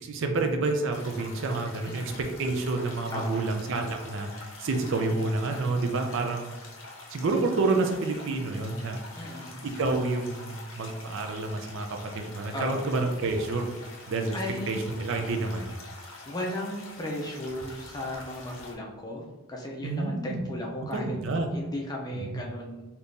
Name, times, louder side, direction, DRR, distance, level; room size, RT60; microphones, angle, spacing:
voice 1, 0.0-6.5 7.1-9.0 9.6-13.7 14.1-14.4 14.7-15.6 19.8-20.4 20.8-21.5 22.1-22.2, right 3 dB, 60° right, 4 dB, 0.4 m, -29 dB
sound 1, 0.9-18.7, left 2 dB, 60° left, 0.6 m, -45 dB
voice 2, 1.8-2.2 3.1-3.5 9.2-9.5 12.5-12.9 14.3-14.8 16.3-21.2 21.5-22.8, left 1 dB, 15° left, -2 dB, 0.5 m, -35 dB
3.6 x 2.8 x 2.6 m, 1.1 s
head